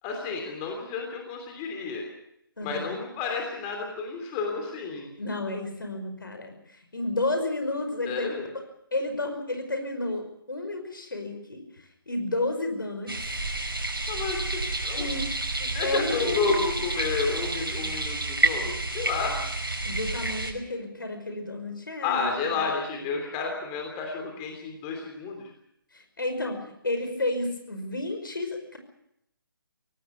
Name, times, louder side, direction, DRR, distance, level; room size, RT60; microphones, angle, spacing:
voice 1, 0.0-2.0 2.6-5.1 8.1-8.5 14.1-15.1 15.7-19.4 22.0-25.5, left 4 dB, 20° left, 2 dB, 3.1 m, -31 dB
voice 2, 2.6-2.9 5.2-8.3 8.9-13.1 14.9-15.3 15.6-16.6 19.8-22.3 25.9-28.8, left 2 dB, 65° left, 6 dB, 5.5 m, -31 dB
sound 1, 13.1-20.5, right 2 dB, 70° right, 5.2 m, -29 dB
24.0 x 18.0 x 6.8 m, 0.77 s
figure-of-eight pair, 145°, 12 cm